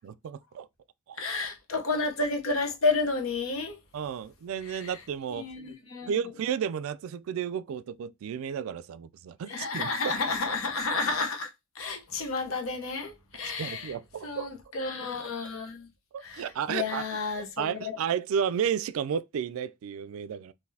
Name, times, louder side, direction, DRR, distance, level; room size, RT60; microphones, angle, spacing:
voice 1, 0.0-0.7 1.1-1.2 3.9-5.5 6.1-10.1 13.6-14.5 16.1-17.0 17.6-20.5, right 7 dB, 80° right, 0.3 m, -32 dB
voice 2, 1.2-3.8 4.7-5.0 5.3-6.3 9.5-11.5 11.7-13.9 14.2-15.9 16.2-18.0, left 3 dB, 80° left, 0.9 m, -31 dB
3.9 x 2.6 x 2.7 m
head